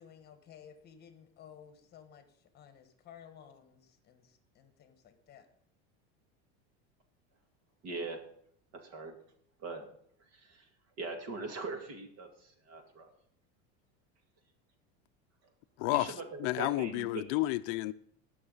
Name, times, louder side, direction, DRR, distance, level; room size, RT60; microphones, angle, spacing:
voice 1, 0.0-5.5, left 8 dB, 30° left, 1.4 m, -55 dB
voice 2, 7.8-8.2 8.7-9.2 9.6-9.9 10.3-10.7 11.0-13.1 15.9-17.2, right 3 dB, 50° right, 2.3 m, -41 dB
voice 3, 15.8-16.1 16.4-17.9, left 19 dB, 65° left, 0.5 m, -31 dB
19.0 x 6.5 x 3.9 m
supercardioid pair, 145°, 31 cm